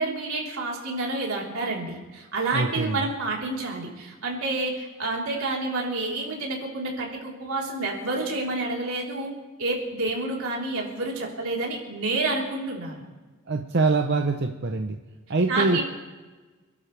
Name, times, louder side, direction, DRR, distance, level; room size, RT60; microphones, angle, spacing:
voice 1, 0.0-9.3 9.6-13.0 15.5-15.8, right 2 dB, 85° right, -3 dB, 3.9 m, -29 dB
voice 2, 2.5-3.0 13.5-15.0 15.3-15.8, right 3 dB, 55° right, 5 dB, 0.7 m, -24 dB
28.0 x 12.0 x 3.4 m, 1.3 s
head